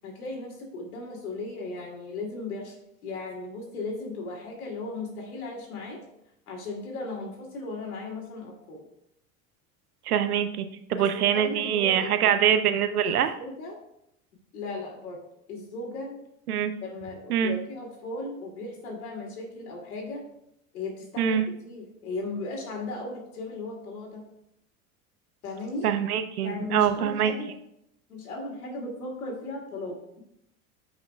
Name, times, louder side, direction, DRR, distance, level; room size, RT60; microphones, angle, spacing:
voice 1, 0.0-2.7 3.0-6.0 6.5-8.8 10.9-12.4 13.0-13.8 14.5-15.2 15.5-16.2 16.8-20.2 20.7-24.3 25.4-25.9 26.4-27.5 28.1-30.0, left 2 dB, 80° left, 0 dB, 2.7 m, -36 dB
voice 2, 10.1-10.6 10.9-13.3 16.5-16.7 17.3-17.5 21.2-21.4 25.8-27.3, right 9 dB, 85° right, 10 dB, 0.8 m, -24 dB
14.0 x 5.7 x 2.3 m, 0.78 s
hypercardioid pair, 75°, 44 cm